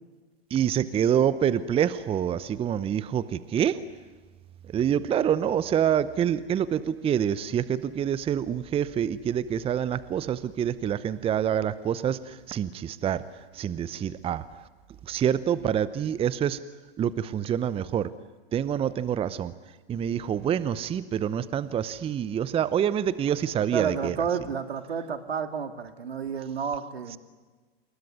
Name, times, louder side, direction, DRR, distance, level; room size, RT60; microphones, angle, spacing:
voice 1, 0.5-3.8 4.7-13.2 13.5-14.4 15.0-16.6 17.0-18.1 18.5-19.5 19.9-24.2, right 9 dB, 20° right, 16 dB, 0.8 m, -26 dB
voice 2, 23.7-27.2, right 7 dB, 75° right, 8 dB, 2.4 m, -30 dB
27.5 x 21.0 x 9.7 m, 1.3 s
figure-of-eight pair, 105°, 31 cm